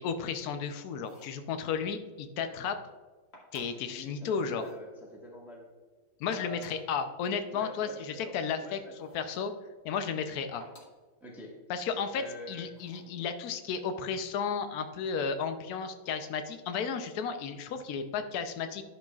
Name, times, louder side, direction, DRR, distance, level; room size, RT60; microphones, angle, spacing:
voice 1, 0.0-2.8 3.5-4.6 6.2-8.8 9.1-9.5 9.8-10.6 11.7-12.2 12.5-18.8, left 6 dB, 65° left, 8 dB, 1.0 m, -33 dB
sound 1, 0.9-1.4 3.3-3.9 4.5-4.8 6.1-6.9 9.0-9.3 10.6-11.0 12.7-13.1, left 1 dB, 35° left, 1.7 m, -54 dB
voice 2, 3.7-5.7 6.3-6.8 7.5-8.3 8.6-8.9 11.2-12.7, left 1 dB, ahead, -2 dB, 0.9 m, -46 dB
11.5 x 6.5 x 2.4 m, 1.4 s
omnidirectional pair, 2.2 m